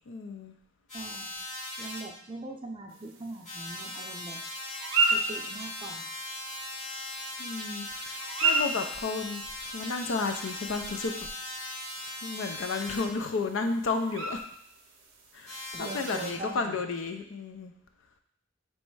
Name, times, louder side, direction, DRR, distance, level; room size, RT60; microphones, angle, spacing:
voice 1, 0.1-0.5 7.4-11.3 12.2-14.4 15.3-17.7, left 4 dB, 70° left, 6 dB, 0.4 m, -32 dB
sound 1, 0.9-2.0 3.5-13.0 15.5-16.3, left 1 dB, 40° left, 1.5 m, -39 dB
voice 2, 0.9-1.3 1.8-4.4 5.1-6.1 15.7-16.8, right 2 dB, 25° right, 2 dB, 0.5 m, -41 dB
sound 2, 2.9-15.7, right 3 dB, 75° right, 0.7 m, -35 dB
3.2 x 3.1 x 4.6 m, 0.69 s
head